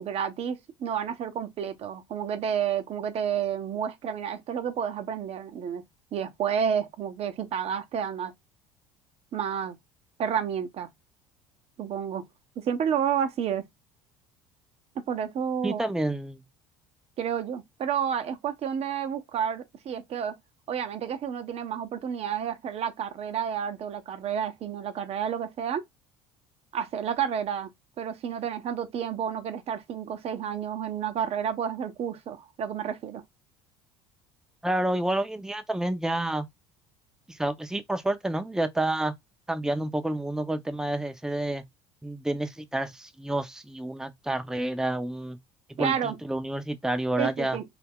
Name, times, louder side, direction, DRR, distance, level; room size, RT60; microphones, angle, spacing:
voice 1, 0.0-5.8 6.1-8.3 9.3-9.8 10.2-10.9 11.8-12.2 12.6-13.6 15.0-15.8 17.2-20.4 20.7-25.8 26.7-27.7 28.0-33.2 45.8-46.2 47.2-47.6, right 8 dB, 45° right, 0.6 m, -30 dB
voice 2, 15.6-16.4 34.6-36.5 37.3-39.1 39.5-41.6 42.0-45.4 45.7-47.6, right 1 dB, 5° right, 0.5 m, -29 dB
2.4 x 2.1 x 3.5 m
hypercardioid pair, 70°, 14 cm